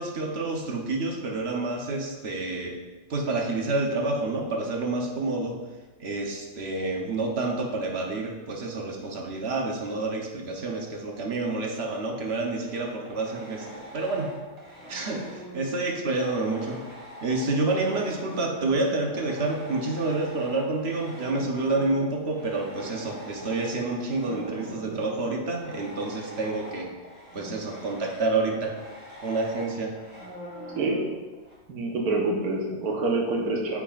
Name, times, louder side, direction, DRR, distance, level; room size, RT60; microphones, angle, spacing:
voice 1, 0.0-2.8 3.1-5.6 6.0-13.7 13.9-14.3 14.9-16.8 17.2-26.9 27.3-28.8 29.2-30.0, right 2 dB, 50° right, 1 dB, 1.0 m, -28 dB
sound 1, 12.6-18.9 19.1-31.6, left 1 dB, 25° right, 1.8 m, -44 dB
voice 2, 31.7-33.8, right 2 dB, 80° right, -1 dB, 1.5 m, -26 dB
8.8 x 4.8 x 2.4 m, 1.3 s
omnidirectional pair, 1.6 m